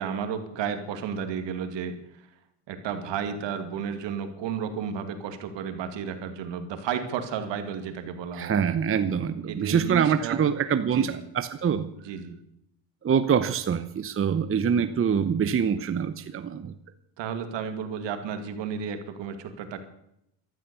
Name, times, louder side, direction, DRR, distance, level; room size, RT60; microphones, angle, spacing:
voice 1, 0.0-2.0 2.7-8.6 9.4-10.4 10.9-11.2 12.0-12.4 14.7-14.9 17.2-19.8, right 7 dB, 65° right, 8 dB, 2.6 m, -32 dB
voice 2, 8.4-11.9 13.0-16.7, right 7 dB, 30° right, 11 dB, 0.9 m, -25 dB
14.0 x 13.0 x 7.0 m, 0.79 s
cardioid pair, 110°, 47 cm